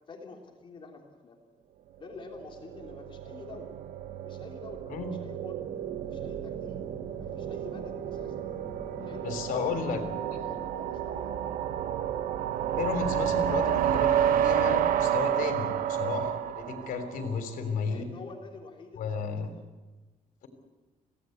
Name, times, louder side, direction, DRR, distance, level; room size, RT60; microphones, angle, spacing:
voice 1, 0.1-1.4 2.0-3.8 4.2-5.6 6.0-6.8 7.2-8.4 8.9-11.3 11.8-11.9 17.9-19.5, left 4 dB, 35° left, 1 dB, 3.4 m, -48 dB
sound 1, 2.2-17.4, right 10 dB, 85° right, 1.1 m, -30 dB
sound 2, 5.6-10.7, left 1 dB, 5° left, 1.5 m, -47 dB
voice 2, 9.2-10.0 12.8-18.1 19.0-19.5, left 5 dB, 90° left, 7 dB, 3.6 m, -33 dB
25.5 x 17.5 x 8.0 m, 1.2 s
cardioid pair, 140°, 14 cm